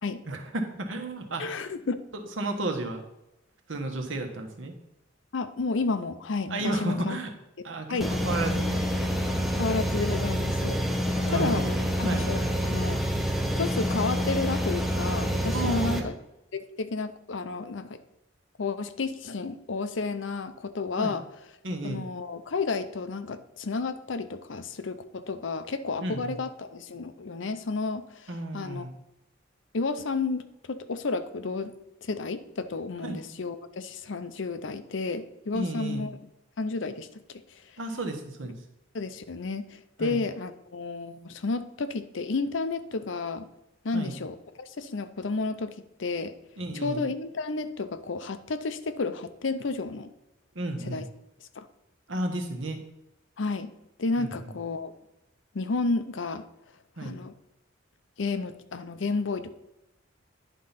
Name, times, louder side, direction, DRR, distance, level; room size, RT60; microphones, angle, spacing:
voice 1, 0.3-1.7 2.4-3.0 3.7-4.7 6.5-7.3 7.6-9.1 11.2-12.5 15.5-16.1 21.0-21.2 21.6-22.0 26.0-26.4 28.3-28.9 33.0-33.2 35.5-36.1 37.8-38.5 40.0-40.2 43.9-44.2 46.6-47.0 50.5-51.0 52.1-52.8 54.2-54.3 57.0-57.2, right 2 dB, 85° right, 4 dB, 1.3 m, -33 dB
voice 2, 1.4-2.0 5.3-7.2 7.9-8.1 9.6-10.8 11.3-11.7 12.0-13.0 13.6-16.1 16.5-18.0 18.6-21.2 21.8-28.8 29.7-31.7 32.0-36.1 36.6-37.6 38.9-43.5 43.8-46.3 46.8-50.1 50.9-51.0 51.6-51.7 53.4-53.7 54.0-54.9 55.5-56.5 57.0-57.3 58.2-59.5, left 3 dB, 75° left, 11 dB, 0.6 m, -31 dB
sound 1, 8.0-16.0, equal, ahead, 0.8 m, -27 dB
10.0 x 3.8 x 5.7 m, 0.89 s
head